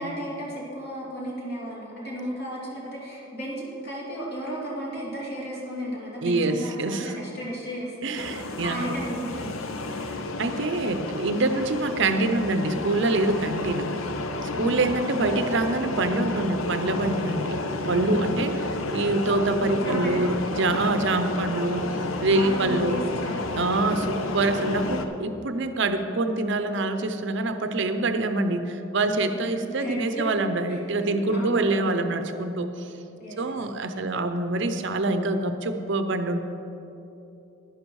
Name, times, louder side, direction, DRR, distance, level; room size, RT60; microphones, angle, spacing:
voice 1, 0.0-9.6 14.5-15.2 18.3-18.4 19.7-20.2 22.3-23.6 29.5-30.3 30.7-31.9 33.2-33.6, equal, 50° left, -5 dB, 2.9 m, -34 dB
voice 2, 6.2-7.2 8.0-8.9 10.4-13.9 14.6-17.6 17.9-18.6 18.9-23.0 23.6-32.9 33.4-36.4, right 2 dB, 60° right, 8 dB, 0.6 m, -25 dB
sound 1, 8.2-25.1, left 2 dB, 85° left, 0.7 m, -31 dB
11.0 x 10.5 x 4.7 m, 3.0 s
head